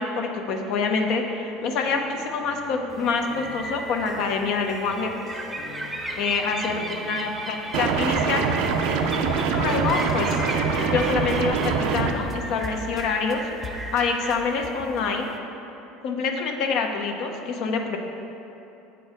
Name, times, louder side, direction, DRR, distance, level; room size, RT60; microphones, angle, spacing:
voice 1, 0.0-5.1 6.2-8.5 9.2-10.4 10.9-13.4 13.9-15.3 16.0-18.0, left 4 dB, 60° left, 4 dB, 0.8 m, -26 dB
sound 1, 1.6-11.3 11.6-13.3 13.6-14.0 14.3-15.1, left 3 dB, 30° left, 0.5 m, -41 dB
sound 2, 2.9-15.4, right 1 dB, 10° right, 0.7 m, -36 dB
sound 3, 7.7-12.1, right 5 dB, 75° right, 0.5 m, -24 dB
8.0 x 4.7 x 5.0 m, 2.9 s
supercardioid pair, 115°, 0 cm